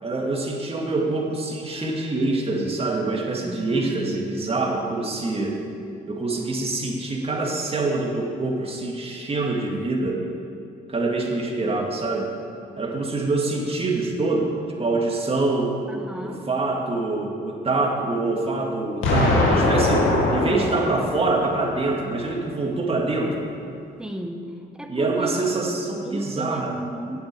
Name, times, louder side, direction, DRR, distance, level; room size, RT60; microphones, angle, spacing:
voice 1, 0.0-5.6 6.1-10.2 10.9-12.3 12.8-14.5 14.8-15.8 16.2-23.5 24.9-26.8, right 2 dB, 30° right, 0 dB, 2.1 m, -25 dB
voice 2, 3.4-4.1 15.9-16.4 24.0-24.5 24.7-25.5 26.0-27.2, right 1 dB, 5° right, 4 dB, 1.3 m, -34 dB
Explosion, 19.0-22.0, left 2 dB, 85° left, 2.2 m, -22 dB
8.6 x 7.9 x 8.5 m, 2.4 s
cardioid pair, 90°, 20 cm